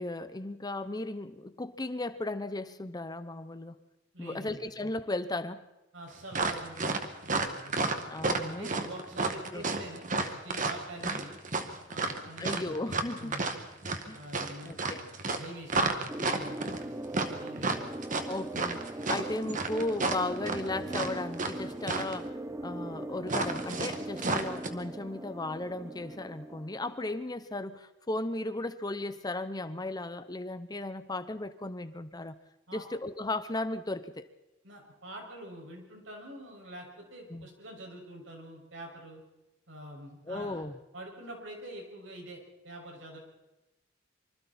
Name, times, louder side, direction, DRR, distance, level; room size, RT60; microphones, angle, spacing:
voice 1, 0.0-3.8 4.2-5.7 8.1-8.7 9.5-9.6 11.0-11.2 12.4-13.3 14.1-14.2 14.6-15.1 18.3-22.4 22.6-32.4 32.7-34.3 37.3-37.5 40.3-40.7, left 2 dB, 20° left, 12 dB, 0.8 m, -36 dB
voice 2, 4.1-4.7 5.9-7.0 7.2-7.9 8.4-11.4 11.9-12.8 13.2-13.5 14.1-16.8 17.4-17.9 32.7-32.8 34.6-39.2 39.7-40.6 40.9-43.2, right 1 dB, 70° right, 1 dB, 6.3 m, -45 dB
sound 1, 6.3-21.6 21.8-22.2 23.3-24.7, right 3 dB, 40° right, 1.9 m, -31 dB
sound 2, 16.1-27.3, right 1 dB, 15° right, 0.7 m, -40 dB
25.5 x 25.0 x 4.3 m, 0.98 s
head